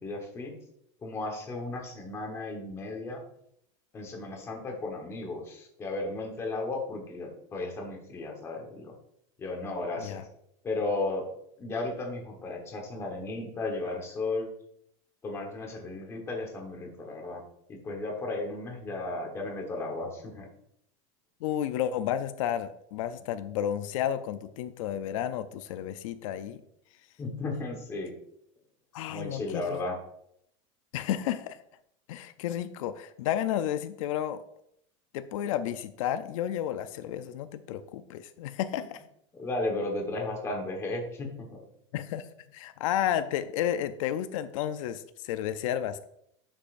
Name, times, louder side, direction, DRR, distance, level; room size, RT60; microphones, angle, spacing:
voice 1, 0.0-0.5 1.0-3.2 3.9-8.9 9.4-10.3 10.6-11.3 11.6-14.5 15.2-17.4 17.7-20.5 27.2-28.1 29.1-30.0 38.8-38.9 39.3-41.5, left 2 dB, 15° left, 1 dB, 1.2 m, -34 dB
voice 2, 21.4-26.6 28.9-29.8 30.9-31.6 32.1-34.4 35.1-39.0 41.9-42.3 42.5-46.1, left 10 dB, 85° left, 11 dB, 0.5 m, -32 dB
10.0 x 5.5 x 2.5 m, 0.73 s
supercardioid pair, 175°, 16 cm